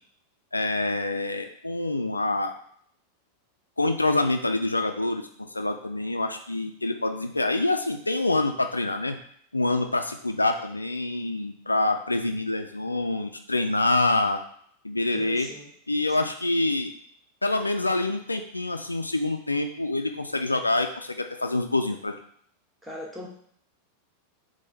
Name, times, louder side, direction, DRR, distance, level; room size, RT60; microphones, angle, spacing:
voice 1, 0.5-2.5 3.8-9.2 9.5-14.4 14.8-15.5 15.9-16.9 17.4-22.1, left 2 dB, 80° left, 6 dB, 0.3 m, -26 dB
voice 2, 15.1-15.7 16.1-16.3 22.8-23.3, left 1 dB, 5° right, -3 dB, 1.2 m, -40 dB
3.7 x 3.3 x 3.9 m, 0.64 s
figure-of-eight pair, 90°, 0 cm